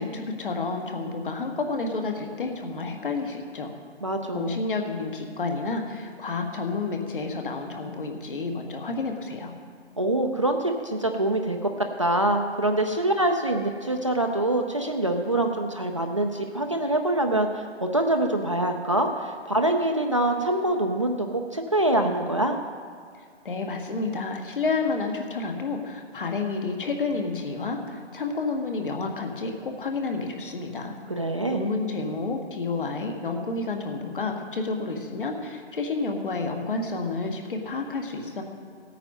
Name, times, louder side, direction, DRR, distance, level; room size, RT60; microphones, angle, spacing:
voice 1, 0.0-3.7 4.3-9.5 23.4-30.9 31.5-38.4, left 3 dB, 50° left, 3 dB, 1.7 m, -30 dB
voice 2, 4.0-4.5 10.0-22.6 31.1-31.6, right 1 dB, 30° right, 4 dB, 0.5 m, -25 dB
16.0 x 9.0 x 5.4 m, 2.1 s
figure-of-eight pair, 165°, 35 cm